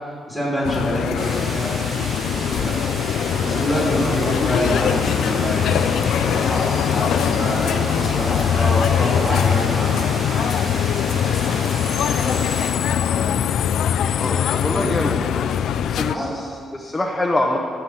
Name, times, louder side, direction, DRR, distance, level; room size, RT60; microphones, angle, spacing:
voice 1, 0.0-1.7 2.3-2.7 3.2-10.8 13.1-13.4 14.7-15.0 16.1-16.3, equal, 10° right, -6 dB, 2.8 m, -26 dB
sound 1, 0.6-16.1, left 9 dB, 85° left, 0.4 m, -22 dB
sound 2, 1.1-12.7, right 1 dB, 40° right, 3.0 m, -32 dB
voice 2, 14.2-15.5 15.9-17.6, left 2 dB, 15° left, 0 dB, 0.7 m, -25 dB
13.0 x 5.8 x 7.7 m, 2.3 s
wide cardioid pair, 160°, 0 cm